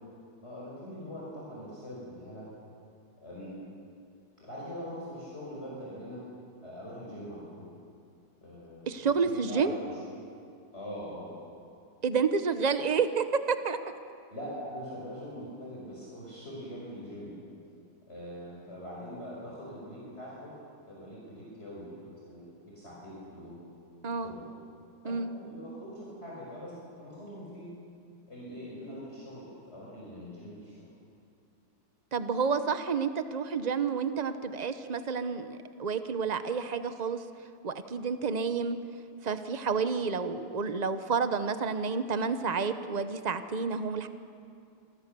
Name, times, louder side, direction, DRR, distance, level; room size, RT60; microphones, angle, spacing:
voice 1, 0.4-2.5 3.2-3.6 4.4-6.2 6.6-7.7 8.4-10.0 10.7-11.3 14.3-17.4 18.1-20.5 20.8-23.6 24.1-24.5 25.0-26.7 27.0-27.7 28.3-30.9, equal, 30° left, -6 dB, 5.9 m, -43 dB
voice 2, 8.9-9.7 12.0-13.8 24.0-24.3 25.0-25.3 32.1-37.2 37.6-38.8 39.2-44.1, right 5 dB, 50° right, 10 dB, 0.5 m, -30 dB
27.0 x 22.5 x 6.9 m, 2.5 s
omnidirectional pair, 2.3 m